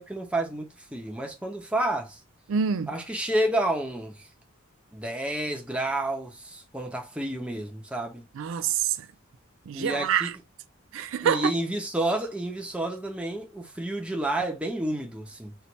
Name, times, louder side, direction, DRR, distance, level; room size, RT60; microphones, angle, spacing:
voice 1, 0.0-2.2 2.9-4.3 4.9-8.3 9.7-10.3 11.2-15.5, right 1 dB, 5° right, 1.0 m, -30 dB
voice 2, 2.5-2.9 8.4-9.1 9.7-10.4 10.9-11.5, right 8 dB, 65° right, 0.4 m, -26 dB
4.6 x 2.8 x 4.1 m
head